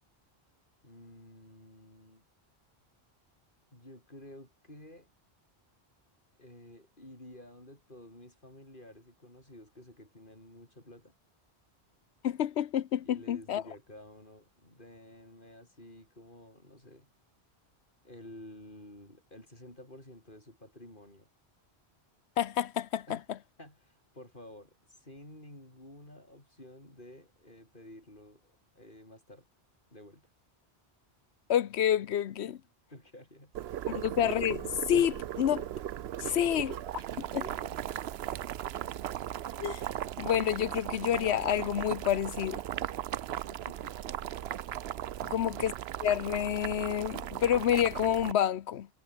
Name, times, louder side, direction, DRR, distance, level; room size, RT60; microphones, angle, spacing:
voice 1, 0.8-2.2 3.7-5.1 6.4-11.1 13.0-17.1 18.0-21.3 23.1-23.2 23.6-29.5 29.9-30.3 32.5-32.6 32.9-33.5 33.8-34.1 36.2-36.6 37.0-38.0 38.7-39.1 43.3-44.1 45.2-45.5, left 1 dB, 50° left, 8.2 m, -52 dB
voice 2, 12.2-13.6 22.4-23.4 31.5-32.6 33.9-35.7 36.3-37.4 39.6-39.8 40.2-42.6 45.3-45.7 46.0-48.9, left 10 dB, 80° left, 1.0 m, -29 dB
Boiling, 33.5-48.3, right 11 dB, 75° right, 0.9 m, -37 dB
omnidirectional pair, 1.1 m